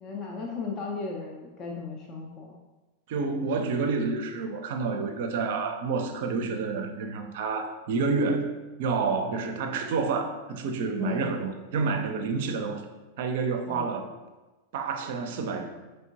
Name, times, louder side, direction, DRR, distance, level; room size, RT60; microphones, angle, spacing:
voice 1, 0.0-2.6 11.0-11.3 13.7-13.9, left 4 dB, 35° left, -1 dB, 0.5 m, -36 dB
voice 2, 3.1-12.9 13.2-14.1 14.7-15.7, right 4 dB, 55° right, 5 dB, 0.4 m, -29 dB
4.2 x 3.3 x 2.7 m, 1.2 s
figure-of-eight pair, 90°, 0 cm